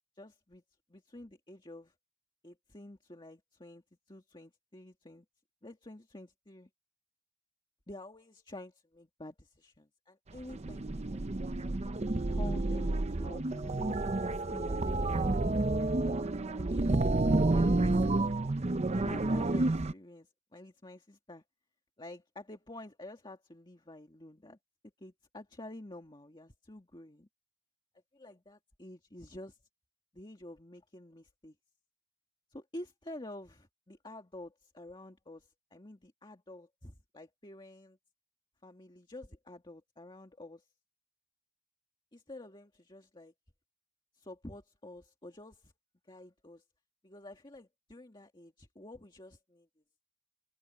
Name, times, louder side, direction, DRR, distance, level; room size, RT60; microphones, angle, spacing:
voice 1, 0.2-0.6 0.9-1.9 2.4-3.8 4.1-5.2 5.6-6.7 7.9-11.2 11.5-11.6 12.3-14.0 14.2-15.6 16.5-17.0 17.5-18.2 18.9-21.4 22.0-24.6 25.0-27.3 28.1-29.6 30.1-31.6 32.5-38.0 38.6-40.6 42.1-43.3 44.2-45.7 46.1-46.6 47.0-49.7, left 1 dB, 20° left, 2.0 m, -49 dB
sound 1, 10.4-19.9, right 2 dB, 30° right, 0.6 m, -30 dB
head